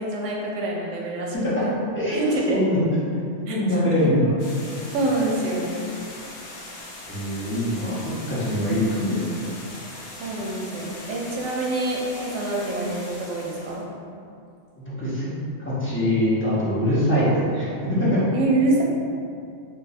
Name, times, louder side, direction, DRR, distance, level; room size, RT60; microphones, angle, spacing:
voice 1, 0.0-1.3 1.6-1.7 2.1-2.6 3.5-4.1 4.9-5.7 10.2-13.8 18.3-18.8, right 2 dB, 80° right, -1 dB, 0.9 m, -26 dB
voice 2, 2.5-2.8 3.5-4.3 7.1-8.0 8.3-9.2 15.0-15.3 15.6-18.2, left 1 dB, 15° left, -10 dB, 0.6 m, -23 dB
sound 1, 4.4-13.8, left 2 dB, 70° left, 0.9 m, -40 dB
2.4 x 2.4 x 4.0 m, 2.5 s
omnidirectional pair, 1.2 m